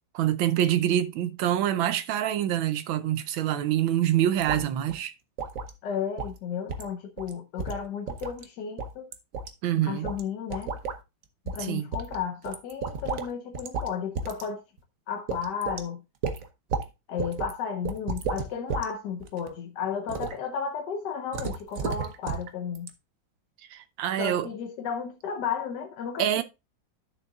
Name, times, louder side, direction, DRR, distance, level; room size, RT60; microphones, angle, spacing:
voice 1, 0.1-5.1 9.6-10.1 11.6-11.9 23.7-24.5 26.2-26.4, right 11 dB, 80° right, 1.5 m, -26 dB
sound 1, 4.4-4.6 4.9-5.0 5.4-5.7 6.2-6.4 6.7-6.9 7.2-7.3 7.6-8.4 8.8-9.5 10.0-10.2 10.5-11.0 11.5-11.6 11.9-13.3 13.5-13.9 14.2-14.5 14.8-14.9 15.3-15.8 16.2-16.9 17.2-17.5 17.9-18.9 19.2-19.5 20.1-20.4 21.3-22.5 22.8-22.9, right 5 dB, 55° right, 1.0 m, -32 dB
voice 2, 5.8-9.1 9.8-10.7 11.5-14.6 15.1-16.0 17.1-22.9 24.2-26.4, left 7 dB, 65° left, 1.3 m, -33 dB
11.5 x 6.6 x 2.3 m
omnidirectional pair, 2.2 m